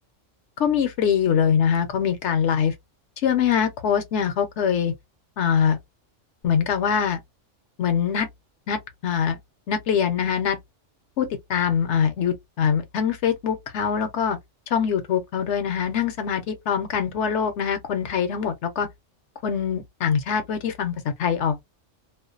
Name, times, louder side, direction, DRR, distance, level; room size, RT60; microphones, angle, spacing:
voice 1, 0.6-2.7 3.2-4.9 5.4-5.8 6.4-7.2 7.8-8.3 8.7-9.4 9.7-10.6 11.2-14.4 14.7-18.9 19.4-20.9 21.2-21.6, left 7 dB, 70° left, 0.9 m, -23 dB
2.4 x 2.2 x 2.5 m
omnidirectional pair, 1.3 m